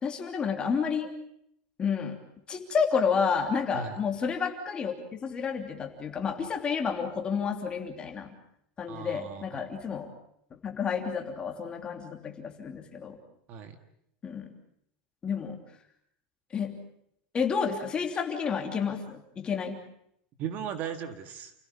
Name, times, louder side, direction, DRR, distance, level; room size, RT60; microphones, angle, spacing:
voice 1, 0.0-1.1 1.8-2.2 2.5-8.3 8.8-10.1 10.6-13.2 14.2-14.5 15.2-15.6 16.5-16.8 17.3-19.8, left 6 dB, 20° left, 3 dB, 3.1 m, -30 dB
voice 2, 8.9-9.7 13.5-13.8 20.4-21.5, right 7 dB, 35° right, 8 dB, 1.9 m, -37 dB
29.5 x 17.0 x 8.7 m, 0.74 s
supercardioid pair, 165°, 5 cm